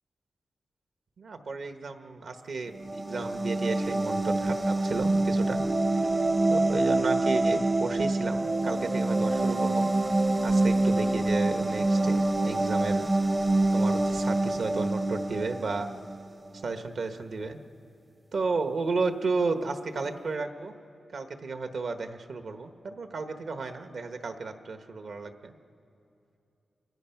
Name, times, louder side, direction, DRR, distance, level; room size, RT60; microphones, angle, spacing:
voice 1, 1.2-5.7 5.9-6.1 6.5-9.9 10.4-12.2 12.4-13.0 13.7-15.9 16.6-17.6 18.3-20.7 21.1-25.6, right 3 dB, 70° right, 7 dB, 1.1 m, -33 dB
sound 1, 2.7-16.3, right 2 dB, 25° right, 0.6 m, -26 dB
28.5 x 23.5 x 5.8 m, 2.7 s
wide cardioid pair, 115°, 0 cm